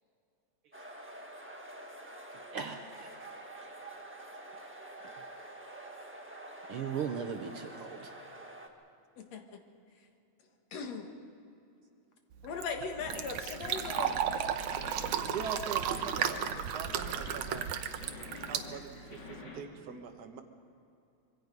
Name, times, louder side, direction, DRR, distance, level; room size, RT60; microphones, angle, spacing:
sound 1, 0.7-8.7, right 1 dB, 15° right, 0.4 m, -47 dB
voice 1, 2.5-3.1 6.7-8.1, right 7 dB, 65° right, 6 dB, 1.5 m, -37 dB
voice 2, 9.2-9.6 10.7-11.1 12.4-14.2, left 5 dB, 65° left, 5 dB, 2.7 m, -39 dB
Fill (with liquid), 12.3-19.4, right 9 dB, 80° right, 2.2 m, -34 dB
sound 2, 13.0-19.6, left 3 dB, 40° left, 2.7 m, -48 dB
voice 3, 15.3-17.7 18.4-20.4, right 6 dB, 45° right, 4 dB, 1.4 m, -42 dB
25.5 x 23.5 x 5.3 m, 2.7 s
omnidirectional pair, 3.4 m